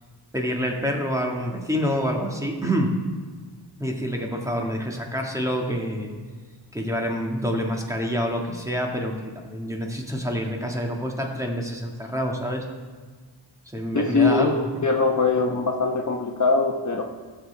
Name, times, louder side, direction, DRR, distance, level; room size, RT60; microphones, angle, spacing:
voice 1, 0.3-2.9 3.8-6.1 6.7-12.6 13.7-14.7, equal, 5° right, 1 dB, 1.7 m, -27 dB
voice 2, 13.9-14.5 14.8-17.0, left 4 dB, 40° left, 1 dB, 1.0 m, -21 dB
14.0 x 7.1 x 3.4 m, 1.5 s
cardioid pair, 50°, 44 cm